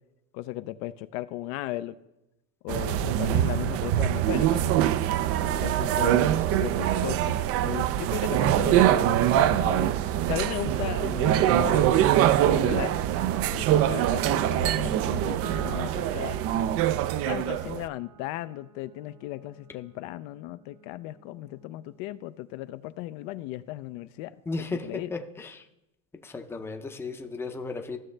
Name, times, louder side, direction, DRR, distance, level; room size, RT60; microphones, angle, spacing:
voice 1, 0.3-2.0 2.6-4.7 5.4-9.9 10.2-13.0 13.5-16.4 17.3-24.3 24.7-25.1, left 16 dB, 55° left, 12 dB, 0.5 m, -36 dB
sound 1, 2.7-17.9, right 12 dB, 35° right, 0.4 m, -24 dB
Piano, 15.4-22.1, right 4 dB, 75° right, 3.3 m, -49 dB
voice 2, 24.5-24.8 25.1-25.6 26.2-28.0, left 3 dB, 5° left, 5 dB, 0.6 m, -35 dB
15.0 x 6.3 x 3.3 m, 0.91 s
supercardioid pair, 125°, 41 cm